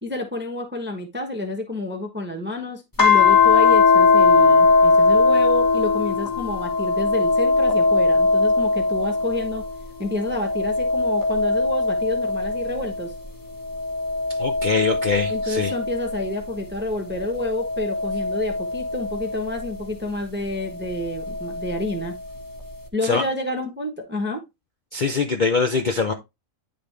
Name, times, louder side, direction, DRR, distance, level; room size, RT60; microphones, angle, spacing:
voice 1, 0.0-9.6 10.0-13.1 15.3-22.1 22.9-24.4, left 2 dB, 10° right, 0.9 m, -29 dB
sound 1, 3.0-9.7 10.2-13.0 13.6-16.4 17.2-19.6 21.0-22.0, left 4 dB, 15° left, 1.2 m, -20 dB
voice 2, 14.4-15.7 23.0-23.2 24.9-26.1, left 4 dB, 45° left, 0.7 m, -23 dB
10.0 x 3.6 x 3.3 m
omnidirectional pair, 1.4 m